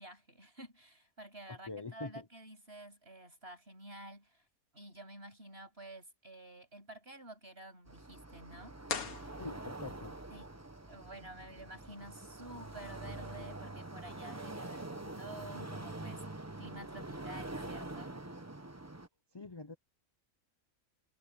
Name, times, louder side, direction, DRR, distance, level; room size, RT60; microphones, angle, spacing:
voice 1, 0.0-4.4 4.7-8.8 10.3-10.5 10.9-18.2, right 1 dB, 40° right, 8.0 m, -51 dB
voice 2, 1.7-2.1 9.4-10.1 19.3-19.7, left 3 dB, 30° left, 0.4 m, -44 dB
sound 1, 7.9-19.1, right 2 dB, 10° right, 0.9 m, -45 dB
sound 2, 8.8-10.0, left 6 dB, 70° left, 2.0 m, -40 dB
omnidirectional pair, 1.6 m